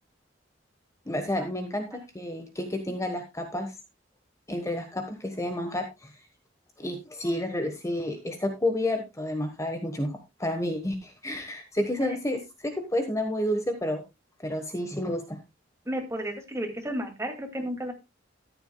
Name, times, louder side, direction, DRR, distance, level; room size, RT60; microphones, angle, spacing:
voice 1, 1.1-3.7 4.5-6.1 6.8-14.0 14.4-15.4, left 1 dB, 15° left, 6 dB, 1.3 m, -30 dB
voice 2, 15.9-17.9, right 1 dB, 15° right, 4 dB, 2.3 m, -33 dB
13.5 x 10.5 x 2.3 m, 0.22 s
head